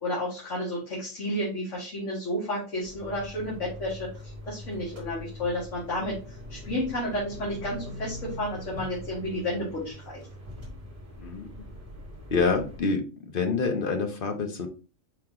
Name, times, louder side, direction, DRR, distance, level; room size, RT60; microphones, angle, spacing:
voice 1, 0.0-10.2, left 1 dB, 65° left, -6 dB, 1.9 m, -31 dB
sound 1, 2.8-12.8, left 1 dB, 35° right, 1.6 m, -42 dB
voice 2, 11.2-11.5 12.3-13.0 13.3-14.7, left 4 dB, 50° left, 5 dB, 0.9 m, -26 dB
4.7 x 3.0 x 3.7 m, 0.35 s
omnidirectional pair, 1.4 m